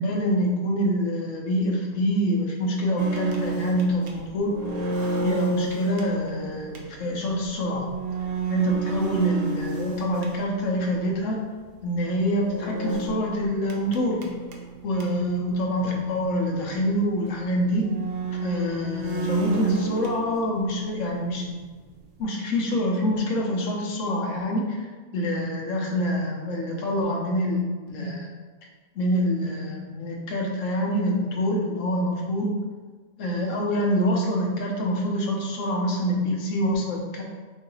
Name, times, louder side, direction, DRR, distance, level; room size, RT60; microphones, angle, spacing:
voice 1, 0.0-4.6 5.2-7.9 8.5-11.4 11.8-14.2 14.8-17.9 18.4-21.6 22.2-24.8 25.1-27.6 27.9-28.3 29.0-32.6 33.2-37.2, equal, 70° left, -1 dB, 1.1 m, -26 dB
sound 1, 3.0-10.8 12.3-15.3 15.7-15.8 16.1-16.2 16.9-17.0 17.6-20.8 21.1-22.2, right 3 dB, 60° right, 0.7 m, -31 dB
3.0 x 2.8 x 4.0 m, 1.4 s
omnidirectional pair, 1.4 m